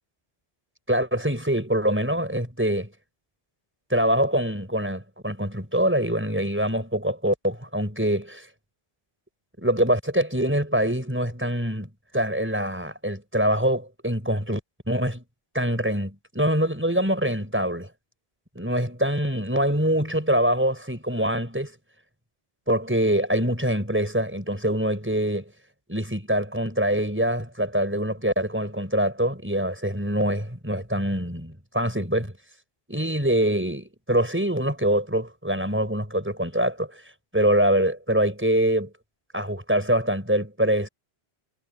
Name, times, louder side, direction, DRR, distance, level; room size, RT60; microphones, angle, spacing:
voice 1, 0.9-2.9 3.9-8.5 9.6-14.6 14.9-15.2 15.5-17.9 18.5-21.7 22.7-25.4 25.9-32.3 32.9-37.0 37.3-38.9 39.3-40.9, right 1 dB, 10° right, 6.1 m, -24 dB
omnidirectional pair, 1.1 m